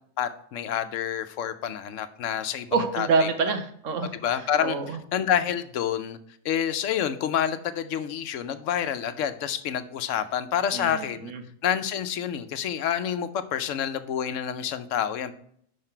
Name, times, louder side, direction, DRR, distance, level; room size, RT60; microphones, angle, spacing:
voice 1, 0.2-3.3 4.2-6.2 6.4-11.3 11.6-15.3, left 9 dB, 75° left, 11 dB, 1.0 m, -28 dB
voice 2, 2.7-4.1 4.6-5.0 10.7-11.4, right 4 dB, 80° right, 7 dB, 1.3 m, -26 dB
5.7 x 5.7 x 4.4 m, 0.65 s
omnidirectional pair, 1.3 m